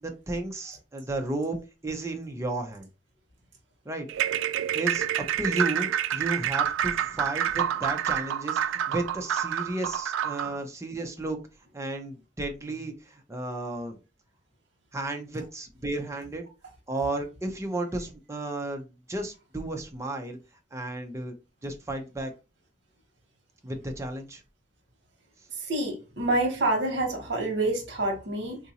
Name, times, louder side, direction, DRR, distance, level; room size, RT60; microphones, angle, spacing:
voice 1, 0.0-1.6 1.8-2.9 3.9-4.3 4.7-5.1 5.4-11.4 11.7-14.0 14.9-16.5 16.9-20.4 20.7-21.3 21.6-22.3 23.6-24.4, right 2 dB, 15° right, 0.6 m, -33 dB
sound 1, 4.1-10.6, right 10 dB, 90° right, 0.3 m, -28 dB
voice 2, 25.7-28.6, right 2 dB, 60° right, 1.1 m, -27 dB
3.9 x 2.5 x 2.8 m
head